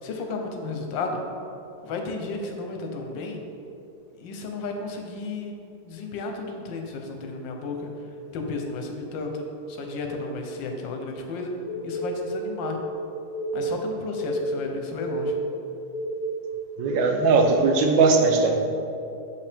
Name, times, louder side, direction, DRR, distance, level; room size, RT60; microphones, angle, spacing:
voice 1, 0.0-1.2 1.8-3.4 4.2-7.9 8.3-11.5 11.8-12.8 13.5-15.4, left 3 dB, 80° left, 3 dB, 1.4 m, -33 dB
sound 1, 11.6-16.5, right 1 dB, 40° left, 1.1 m, -30 dB
voice 2, 16.8-18.6, right 4 dB, 80° right, 4 dB, 1.4 m, -19 dB
6.4 x 5.7 x 3.4 m, 2.7 s
omnidirectional pair, 2.0 m